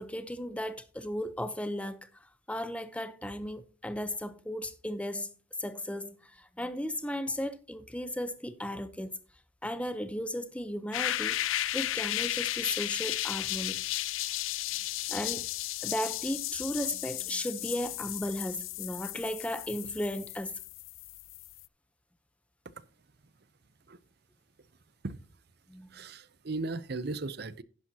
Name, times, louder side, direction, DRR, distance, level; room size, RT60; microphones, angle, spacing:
voice 1, 0.0-2.1 2.5-5.3 5.6-9.2 9.6-11.4 11.7-13.8 14.2-14.3 15.1-15.5 15.8-20.5 25.7-25.9, left 1 dB, 5° left, 0.7 m, -35 dB
sound 1, 10.9-21.7, left 14 dB, 80° left, 0.4 m, -34 dB
voice 2, 25.9-27.6, right 3 dB, 55° right, 0.7 m, -36 dB
11.0 x 10.5 x 2.8 m
head